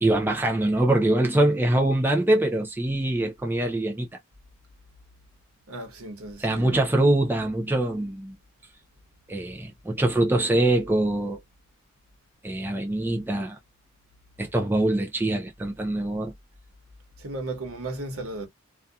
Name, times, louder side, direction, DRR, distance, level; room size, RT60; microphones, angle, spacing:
voice 1, 0.0-4.1 6.4-8.3 9.3-11.4 12.4-13.6 14.4-16.3, right 1 dB, 10° right, 0.4 m, -23 dB
voice 2, 5.7-6.8 17.2-18.5, right 2 dB, 80° right, 1.0 m, -35 dB
2.6 x 2.3 x 2.3 m
head